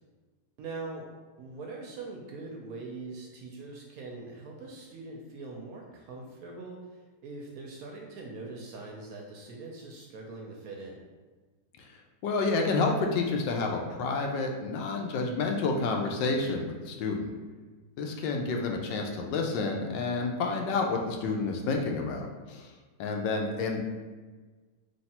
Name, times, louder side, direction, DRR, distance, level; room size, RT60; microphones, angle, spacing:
voice 1, 0.6-1.1 1.4-11.0, right 3 dB, 70° right, -1 dB, 0.9 m, -42 dB
voice 2, 12.2-17.3 18.0-22.7 23.0-23.8, left 3 dB, 85° left, 2 dB, 1.3 m, -29 dB
3.2 x 2.8 x 4.1 m, 1.3 s
omnidirectional pair, 1.9 m